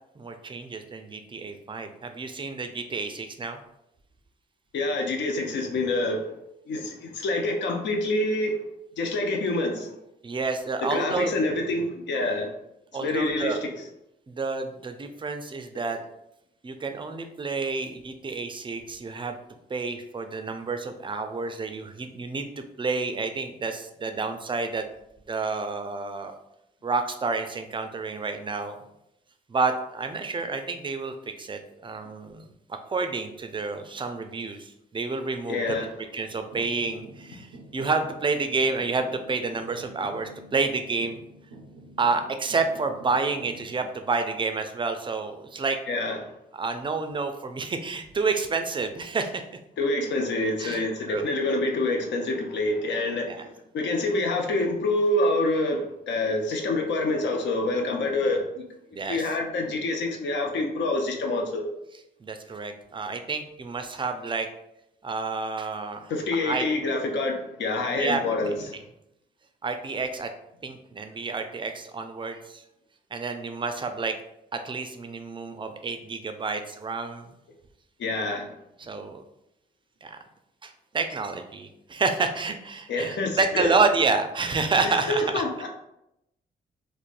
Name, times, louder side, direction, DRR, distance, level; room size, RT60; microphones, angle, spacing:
voice 1, 0.2-3.6 10.2-11.3 12.9-13.6 14.3-16.0 16.6-19.3 19.7-24.8 25.3-26.3 26.8-28.8 29.5-32.5 32.8-35.8 36.1-37.5 37.7-41.2 42.0-45.8 46.5-49.4 50.6-51.3 53.3-53.4 58.9-59.2 62.2-64.5 65.0-66.1 66.4-66.7 67.9-68.2 68.5-68.6 69.6-70.3 70.6-72.6 73.1-74.2 74.5-77.3 78.8-79.2 80.0-80.2 80.6-85.4, right 4 dB, 25° right, 7 dB, 0.4 m, -29 dB
voice 2, 4.7-6.3 6.7-8.6 9.0-9.9 10.9-12.5 13.0-13.9 35.5-35.9 45.9-46.3 49.8-58.6 59.1-61.6 66.1-68.8 78.0-78.5 82.9-83.7 84.8-85.7, left 2 dB, 65° left, 3 dB, 0.6 m, -27 dB
sound 1, 36.4-43.8, right 1 dB, 80° right, 0.5 m, -47 dB
3.2 x 2.0 x 2.5 m, 0.83 s
hypercardioid pair, 45°, 20 cm